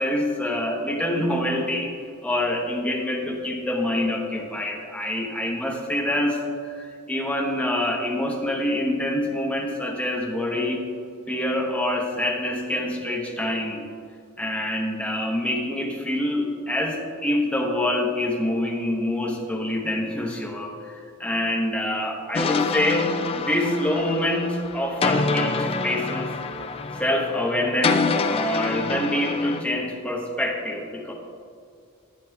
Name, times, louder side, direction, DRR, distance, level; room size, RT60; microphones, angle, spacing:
voice 1, 0.0-1.9 2.2-10.8 11.3-13.8 14.4-26.3 26.9-31.1, left 1 dB, 5° left, 0 dB, 0.9 m, -26 dB
sound 1, 22.3-29.6, left 4 dB, 25° left, 0.3 m, -26 dB
11.0 x 9.2 x 2.3 m, 2.3 s
head